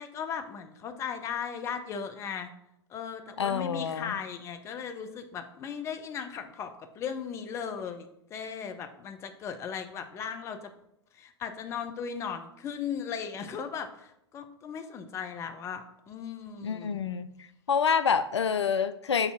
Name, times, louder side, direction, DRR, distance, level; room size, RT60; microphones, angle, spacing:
voice 1, 0.0-2.5 2.9-10.6 11.1-17.0, left 7 dB, 20° left, 7 dB, 0.6 m, -37 dB
voice 2, 3.4-4.1 16.6-17.3 17.7-19.3, left 6 dB, 70° left, 12 dB, 0.4 m, -27 dB
6.8 x 2.7 x 5.7 m, 0.82 s
figure-of-eight pair, 105°, 15 cm